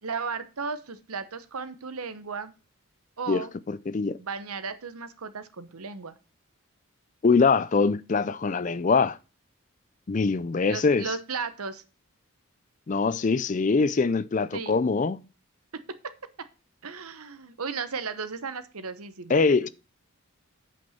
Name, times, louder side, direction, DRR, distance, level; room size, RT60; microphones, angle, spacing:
voice 1, 0.0-2.5 3.2-3.5 4.2-6.2 10.7-11.8 14.5-14.7 15.7-16.5 16.8-19.7, right 5 dB, 85° right, 1.0 m, -35 dB
voice 2, 3.3-4.2 7.2-9.2 10.1-11.2 12.9-15.2 19.3-19.7, left 4 dB, 35° left, 0.4 m, -23 dB
8.7 x 5.3 x 5.7 m
head